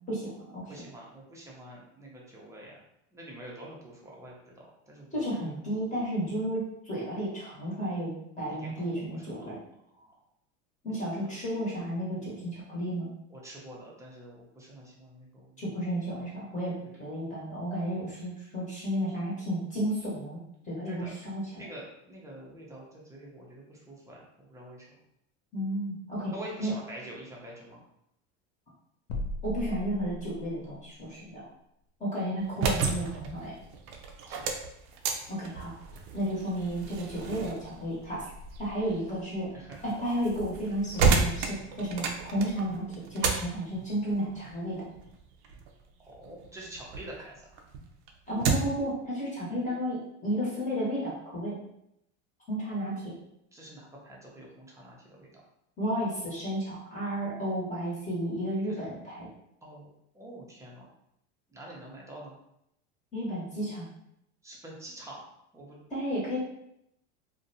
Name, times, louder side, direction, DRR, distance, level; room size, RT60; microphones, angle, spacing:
voice 1, 0.1-0.7 5.1-9.6 10.8-13.1 15.6-20.4 20.6-21.6 25.5-26.3 26.6-26.7 29.4-31.5 32.0-33.5 35.3-35.7 36.1-38.2 38.6-39.5 39.8-42.8 43.1-44.8 48.3-51.6 52.5-53.1 55.8-59.3 63.1-63.9 65.9-66.4, equal, 20° left, -6 dB, 1.0 m, -32 dB
voice 2, 0.7-2.8 3.1-5.1 5.4-5.5 8.5-9.1 9.3-9.5 9.9-10.1 10.9-11.0 13.3-15.6 16.8-16.9 20.8-21.1 21.5-24.9 26.3-27.8 34.3-34.5 39.5-39.8 46.0-47.5 53.5-55.4 58.7-58.8 59.6-59.9 60.1-60.9 61.5-62.4 64.4-65.3 65.5-65.8, right 1 dB, 10° right, -3 dB, 0.6 m, -46 dB
sound 1, 29.1-30.7, equal, 65° left, 0.6 m, -36 dB
sound 2, 32.4-47.1 47.5-48.9, right 4 dB, 65° right, 0.5 m, -33 dB
2.6 x 2.2 x 2.7 m, 0.79 s
supercardioid pair, 115°, 35 cm